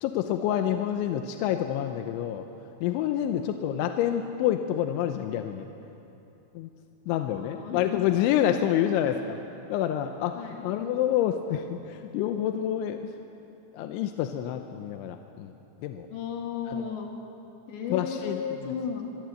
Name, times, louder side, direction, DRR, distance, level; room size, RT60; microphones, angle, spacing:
voice 1, 0.0-2.5 2.8-5.7 6.6-6.7 7.1-9.4 9.7-10.4 10.6-13.1 13.7-15.5 15.8-16.1 17.9-18.4, left 11 dB, 85° left, 6 dB, 3.2 m, -27 dB
voice 2, 3.4-3.9 7.2-8.7 10.3-10.8 16.1-17.1 17.7-19.0, left 7 dB, 70° left, 1 dB, 4.7 m, -36 dB
25.0 x 22.5 x 7.9 m, 2.9 s
omnidirectional pair, 5.4 m